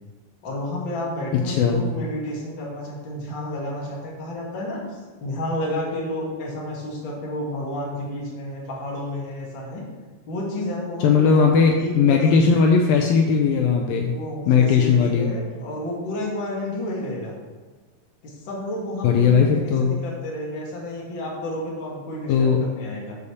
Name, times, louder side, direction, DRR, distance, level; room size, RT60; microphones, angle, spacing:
voice 1, 0.4-9.8 10.3-12.3 14.1-17.3 18.2-23.2, left 1 dB, 40° left, -4 dB, 2.0 m, -31 dB
voice 2, 1.5-1.8 11.0-14.1 14.5-15.3 19.0-20.0 22.3-22.6, left 6 dB, 80° left, 2 dB, 2.2 m, -18 dB
6.6 x 5.5 x 6.9 m, 1.4 s
omnidirectional pair, 4.4 m